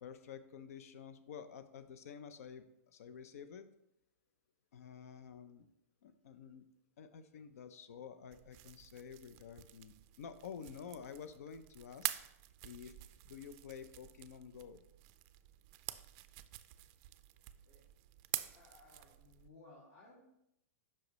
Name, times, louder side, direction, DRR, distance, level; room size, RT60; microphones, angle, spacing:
voice 1, 0.0-3.7 4.7-5.7 6.0-6.6 7.0-12.1 12.6-14.8, left 7 dB, 75° left, 11 dB, 0.6 m, -50 dB
sound 1, 8.3-19.5, right 16 dB, 40° right, 0.4 m, -47 dB
voice 2, 18.5-20.2, left 2 dB, 50° left, -6 dB, 2.4 m, -60 dB
7.7 x 5.7 x 3.1 m, 0.80 s
hypercardioid pair, 140°, 8 cm